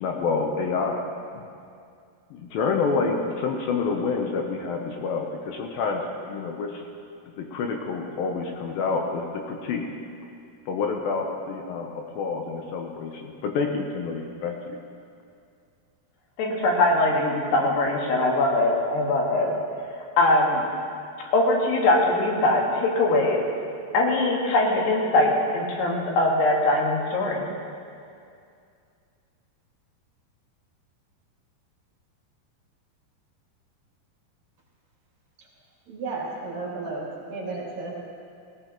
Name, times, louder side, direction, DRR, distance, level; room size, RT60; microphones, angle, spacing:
voice 1, 0.0-1.0 1.3-1.5 2.3-6.8 7.4-9.8 10.7-14.8, left 4 dB, 70° left, 2 dB, 2.4 m, -28 dB
voice 2, 16.4-19.5 19.8-20.6 21.3-23.4 23.9-27.5, left 2 dB, 90° left, -1 dB, 3.9 m, -22 dB
voice 3, 35.9-38.1, right 3 dB, 60° right, -4 dB, 4.4 m, -33 dB
19.0 x 16.5 x 3.0 m, 2.4 s
omnidirectional pair, 4.6 m